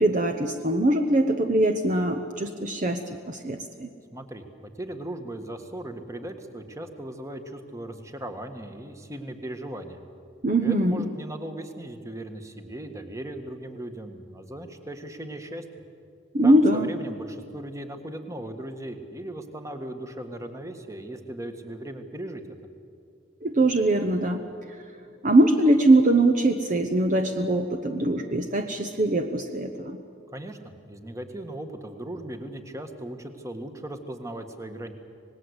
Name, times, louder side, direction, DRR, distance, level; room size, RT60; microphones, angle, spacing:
voice 1, 0.0-3.9 10.4-11.1 16.3-16.9 23.4-24.4 25.2-30.0, right 1 dB, 40° right, 6 dB, 0.9 m, -22 dB
voice 2, 4.1-10.0 10.6-15.6 16.4-22.4 30.3-34.9, right 1 dB, 15° right, 6 dB, 1.5 m, -38 dB
26.0 x 19.5 x 8.1 m, 2.4 s
head